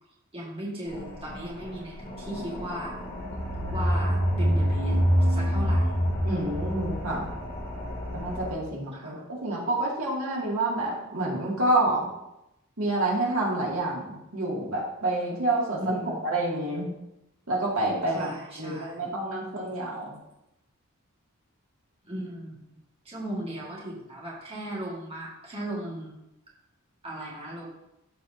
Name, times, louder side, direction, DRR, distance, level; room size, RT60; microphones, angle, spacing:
voice 1, 0.3-2.9 3.7-5.0 5.3-5.9 8.9-9.2 15.8-16.2 18.1-19.0 22.0-22.6 23.1-26.1 27.0-27.7, right 1 dB, 25° right, -5 dB, 1.8 m, -36 dB
sound 1, 0.9-8.5, left 1 dB, 40° left, 2.6 m, -36 dB
sound 2, 3.2-7.7, equal, 65° left, 1.6 m, -25 dB
voice 2, 6.2-7.3 8.1-12.1 12.8-16.9 17.5-18.3 18.6-20.2, right 2 dB, 80° right, -4 dB, 2.3 m, -28 dB
13.5 x 4.7 x 2.7 m, 0.88 s
head